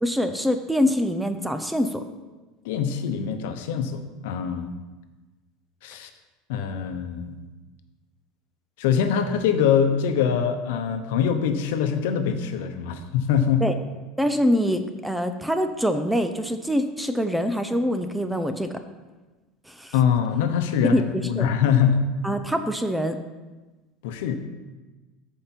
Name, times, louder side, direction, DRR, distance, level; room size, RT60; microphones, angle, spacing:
voice 1, 0.0-2.0 13.6-13.7 14.2-18.7 19.7-19.9 20.9-21.0 21.4-21.5 22.2-23.2, equal, ahead, 8 dB, 0.4 m, -24 dB
voice 2, 2.6-4.7 5.8-6.1 6.5-7.4 8.8-13.6 19.9-22.0 24.0-24.3, left 8 dB, 70° left, 8 dB, 0.9 m, -23 dB
13.5 x 5.0 x 4.4 m, 1.2 s
cardioid pair, 180°, 0 cm